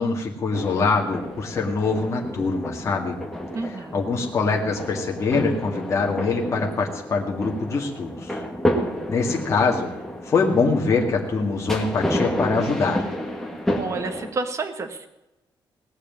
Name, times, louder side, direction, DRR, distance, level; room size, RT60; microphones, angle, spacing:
voice 1, 0.0-3.2 3.7-8.4 9.1-9.9 10.2-13.0, left 4 dB, 35° left, 0 dB, 2.0 m, -24 dB
sound 1, 0.5-14.3, left 1 dB, 5° left, 1.7 m, -30 dB
voice 2, 3.5-4.1 13.8-15.1, right 3 dB, 35° right, 7 dB, 1.4 m, -30 dB
18.0 x 6.6 x 9.3 m, 0.97 s
wide cardioid pair, 175°, 9 cm